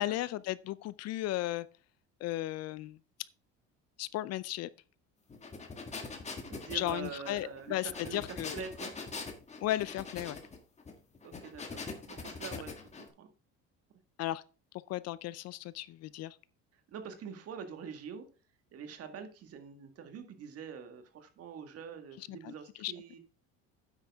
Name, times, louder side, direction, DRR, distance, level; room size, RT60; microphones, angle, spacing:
voice 1, 0.0-1.7 2.2-3.0 4.0-4.7 6.7-8.6 9.6-10.4 14.2-14.4 14.9-16.4 22.2-22.5 22.8-22.9, left 15 dB, 50° left, 0.5 m, -35 dB
sound 1, 5.3-13.1, left 4 dB, 20° left, 1.8 m, -43 dB
voice 2, 6.5-8.9 11.2-13.3 16.9-18.3 18.7-23.2, right 6 dB, 45° right, 1.8 m, -45 dB
9.7 x 8.2 x 3.5 m
cardioid pair, 125°, 32 cm